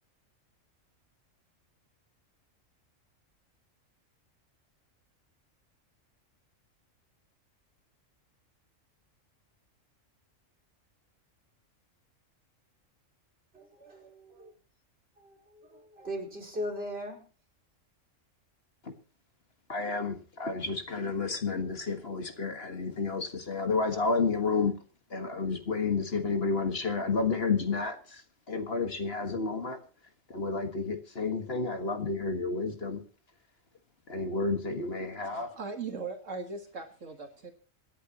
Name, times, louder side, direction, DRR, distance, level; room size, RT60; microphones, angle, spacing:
voice 1, 13.5-14.5 15.2-17.2, equal, 50° right, 2 dB, 4.7 m, -39 dB
voice 2, 19.7-24.7 25.1-28.2 28.5-29.8 30.3-33.0 34.1-35.5, left 4 dB, 50° left, 7 dB, 1.9 m, -31 dB
voice 3, 35.3-37.5, right 4 dB, 70° right, 6 dB, 2.0 m, -39 dB
26.5 x 10.0 x 2.9 m, 0.37 s
omnidirectional pair, 1.3 m